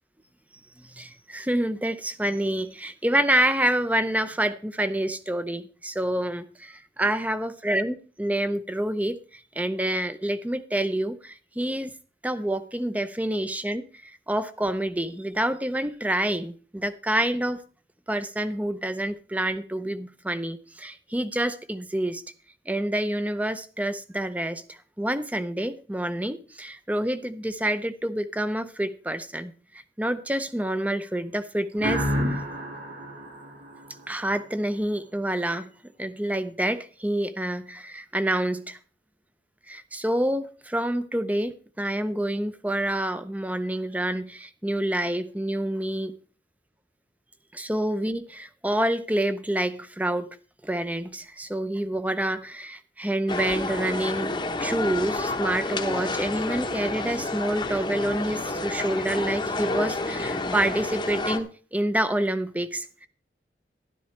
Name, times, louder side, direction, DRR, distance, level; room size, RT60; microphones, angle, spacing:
voice 1, 0.9-11.9 12.2-17.6 18.1-22.2 22.7-32.1 34.1-35.7 36.0-38.8 39.7-46.2 47.5-50.3 50.6-54.3 54.6-63.1, right 1 dB, 10° right, 12 dB, 0.6 m, -27 dB
sound 1, 31.8-34.5, equal, 90° right, 5.4 m, -30 dB
sound 2, 53.3-61.4, left 2 dB, 25° left, 0.9 m, -29 dB
12.5 x 11.5 x 3.3 m, 0.39 s
head